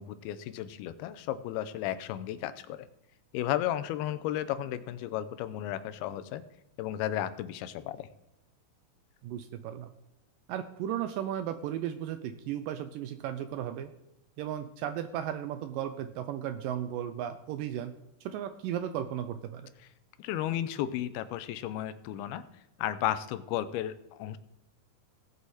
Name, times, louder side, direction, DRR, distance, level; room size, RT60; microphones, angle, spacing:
voice 1, 0.0-2.9 3.3-6.4 6.8-8.1 20.2-22.4 22.8-24.4, left 12 dB, 85° left, 13 dB, 2.6 m, -34 dB
voice 2, 9.2-9.9 10.5-13.9 14.4-17.9 18.2-19.7, right 10 dB, 80° right, 9 dB, 2.0 m, -35 dB
17.5 x 6.4 x 4.1 m, 0.86 s
omnidirectional pair, 4.3 m